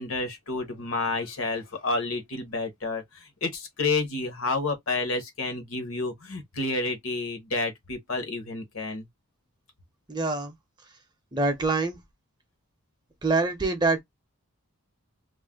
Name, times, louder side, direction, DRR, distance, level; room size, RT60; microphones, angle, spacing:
voice 1, 0.0-9.1, left 3 dB, 70° left, 0.9 m, -30 dB
voice 2, 10.1-10.5 11.3-12.0 13.2-14.0, right 3 dB, 20° right, 0.5 m, -25 dB
2.5 x 2.1 x 3.4 m
head